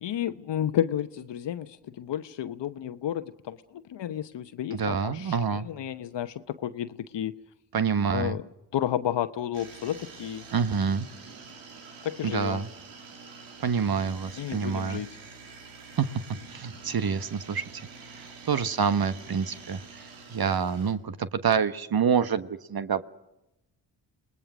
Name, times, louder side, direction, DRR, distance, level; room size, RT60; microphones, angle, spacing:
voice 1, 0.0-7.3 8.1-8.4 8.7-10.4 12.0-12.7 14.4-15.2, left 10 dB, 65° left, 1.0 m, -32 dB
voice 2, 4.7-5.7 7.7-8.4 10.5-11.1 12.2-12.7 13.6-15.0 16.0-16.2 16.5-17.7 18.0-23.0, right 6 dB, 50° right, 1.3 m, -27 dB
sound 1, 9.5-20.9, right 4 dB, 90° right, 2.9 m, -47 dB
28.0 x 19.5 x 6.2 m
supercardioid pair, 45°, 45 cm